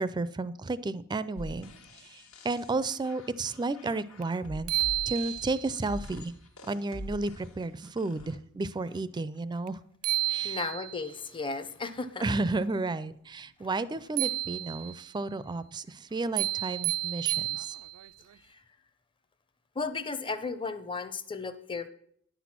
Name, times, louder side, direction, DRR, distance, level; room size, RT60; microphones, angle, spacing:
voice 1, 0.0-4.7 5.1-6.3 6.7-9.8 10.2-10.6 12.2-17.7, right 3 dB, 20° right, 16 dB, 0.4 m, -32 dB
sound 1, 1.4-8.4, equal, 75° left, 1.3 m, -45 dB
Anika's Bycicle Bell, 4.2-4.3 4.7-5.8 9.7-9.8 10.0-11.1 14.2-15.1 16.4-18.1, right 19 dB, 90° right, 0.4 m, -31 dB
voice 2, 10.4-12.2 19.8-21.9, left 4 dB, 25° left, 12 dB, 0.6 m, -34 dB
10.0 x 6.1 x 5.9 m, 0.68 s
head